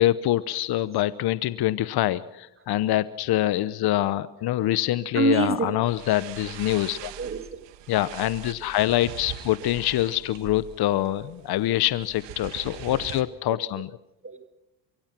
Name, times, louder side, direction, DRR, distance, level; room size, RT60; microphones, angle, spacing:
voice 1, 0.0-7.1 7.9-13.9, left 14 dB, 60° left, 16 dB, 0.9 m, -25 dB
voice 2, 5.1-5.8 7.0-7.7 12.9-13.0 13.5-13.6 14.2-14.5, right 3 dB, 30° right, 10 dB, 1.8 m, -27 dB
sound 1, 5.8-13.2, right 12 dB, 70° right, 1.7 m, -42 dB
24.5 x 23.5 x 6.0 m, 0.90 s
supercardioid pair, 90°, 44 cm